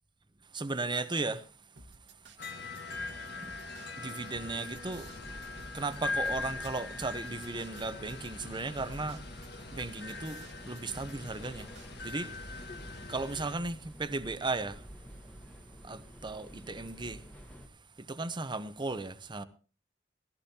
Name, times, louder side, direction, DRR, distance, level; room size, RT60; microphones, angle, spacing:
voice 1, 0.5-1.5 3.4-3.5 4.0-5.1 5.7-9.2 9.7-11.7 12.0-12.7 13.1-14.9 15.4-17.3 18.0-19.4, right 3 dB, 25° right, 0.8 m, -36 dB
sound 1, 1.8-12.4, right 2 dB, 65° right, 1.7 m, -54 dB
sound 2, 2.4-13.6, left 3 dB, 60° left, 1.6 m, -41 dB
sound 3, 4.7-17.7, equal, 10° left, 1.3 m, -50 dB
18.0 x 15.0 x 2.8 m
head